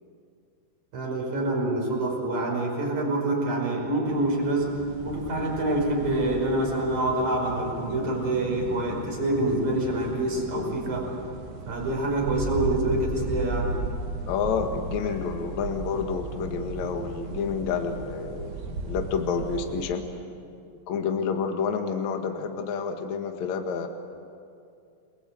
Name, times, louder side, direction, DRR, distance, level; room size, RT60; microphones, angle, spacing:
voice 1, 0.9-4.7 5.0-11.1 11.7-13.7 15.1-15.2, right 1 dB, 35° right, -1 dB, 6.3 m, -26 dB
sound 1, 4.1-19.9, right 2 dB, 65° right, 4.0 m, -36 dB
voice 2, 14.3-20.1 20.9-23.9, left 6 dB, 65° left, 4 dB, 1.8 m, -29 dB
30.0 x 22.0 x 7.9 m, 2.4 s
omnidirectional pair, 5.9 m